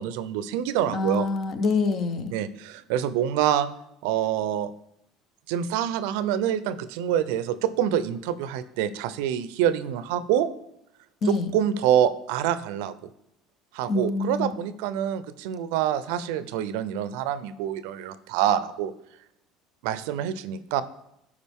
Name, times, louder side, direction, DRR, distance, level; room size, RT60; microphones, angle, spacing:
voice 1, 0.0-1.3 2.3-3.7 4.0-4.7 5.5-10.5 11.3-12.9 13.7-18.9 19.8-20.8, right 10 dB, 80° right, 14 dB, 0.5 m, -26 dB
voice 2, 0.9-2.4 11.2-11.5 13.9-14.6, left 3 dB, 40° left, 10 dB, 0.8 m, -26 dB
12.5 x 4.9 x 3.6 m, 0.79 s
cardioid pair, 130°, 0 cm